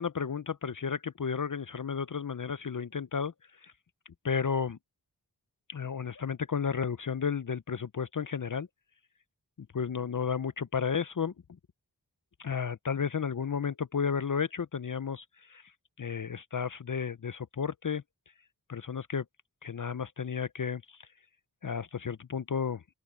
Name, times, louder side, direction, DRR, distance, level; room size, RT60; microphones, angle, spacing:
voice 1, 0.0-3.3 3.6-3.7 4.2-4.8 5.7-8.7 9.7-11.3 12.4-15.6 16.0-18.0 18.7-19.2 19.6-21.0 21.6-22.8, left 6 dB, 50° left, 0.6 m, -32 dB
open air
wide cardioid pair, 40°, 41 cm